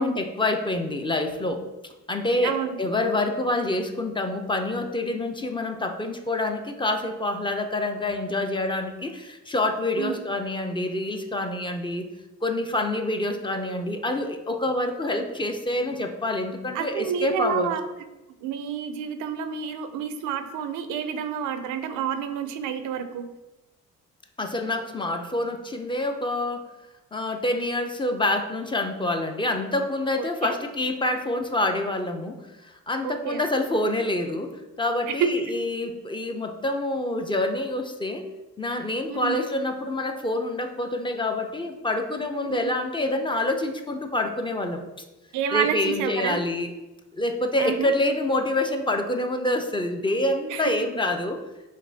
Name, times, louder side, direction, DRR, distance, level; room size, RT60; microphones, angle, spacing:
voice 1, 0.0-1.7 2.1-12.1 12.4-17.7 24.4-26.6 27.1-38.2 38.6-44.8 45.5-46.7 47.1-51.4, left 1 dB, 15° left, 5 dB, 0.4 m, -27 dB
voice 2, 2.4-2.8 10.0-10.1 16.7-17.8 18.4-23.3 30.4-30.5 33.0-33.4 35.1-35.3 39.1-39.4 42.5-42.7 43.0-43.1 45.3-46.4 47.6-47.9 50.5-50.7, right 8 dB, 90° right, 9 dB, 0.4 m, -29 dB
5.1 x 3.1 x 2.7 m, 1.0 s
cardioid pair, 90°, 30 cm